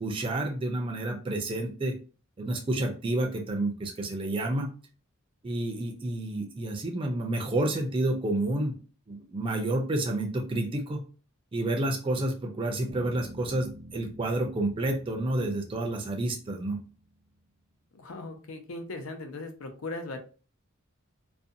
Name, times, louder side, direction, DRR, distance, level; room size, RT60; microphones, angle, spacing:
voice 1, 0.0-1.9 2.4-4.7 5.4-8.8 9.1-11.0 11.5-16.8, right 1 dB, 25° right, 2 dB, 0.3 m, -29 dB
Bass guitar, 12.9-17.3, right 1 dB, 80° right, 0.6 m, -48 dB
voice 2, 17.9-20.2, left 2 dB, 85° left, 6 dB, 0.5 m, -38 dB
2.5 x 2.2 x 2.6 m, 0.37 s
head